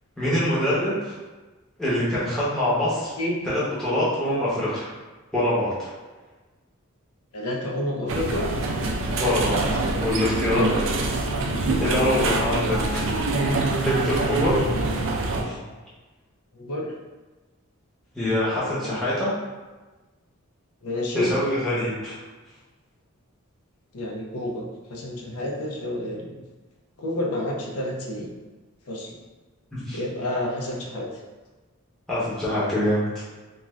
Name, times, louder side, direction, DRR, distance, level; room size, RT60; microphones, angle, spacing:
voice 1, 0.2-1.1 1.8-3.1 3.4-4.9 5.3-5.9 9.2-10.9 11.3-11.4 11.8-13.0 13.8-14.6 15.4-15.6 18.1-19.3 21.1-22.1 29.7-30.0 32.1-33.2, left 1 dB, ahead, -11 dB, 0.8 m, -24 dB
voice 2, 7.3-8.5 12.5-12.8 16.5-16.9 18.8-19.0 20.8-21.3 23.9-26.4 27.0-28.3 28.9-29.2 29.9-31.1, left 1 dB, 85° left, -1 dB, 0.6 m, -29 dB
sound 1, 8.1-15.4, right 2 dB, 60° right, 0.4 m, -25 dB
2.4 x 2.3 x 3.1 m, 1.2 s
head